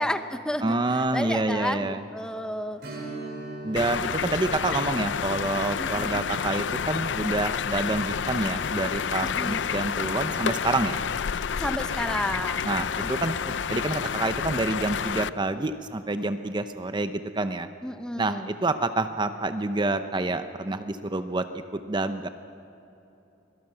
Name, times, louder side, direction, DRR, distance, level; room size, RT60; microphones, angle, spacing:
voice 1, 0.0-2.8 5.8-6.2 9.2-9.6 11.6-12.7 13.0-13.1 17.8-18.5, equal, 5° left, 9 dB, 0.9 m, -31 dB
voice 2, 0.6-2.0 3.6-11.0 12.6-17.7 18.2-22.3, right 2 dB, 25° right, 10 dB, 0.7 m, -28 dB
Strum, 2.8-12.0 12.3-12.4 15.0-15.1 15.6-15.7, right 1 dB, 60° right, 4.7 m, -44 dB
sound 1, 3.8-15.3, left 7 dB, 70° left, 0.5 m, -29 dB
24.0 x 18.0 x 7.8 m, 3.0 s
head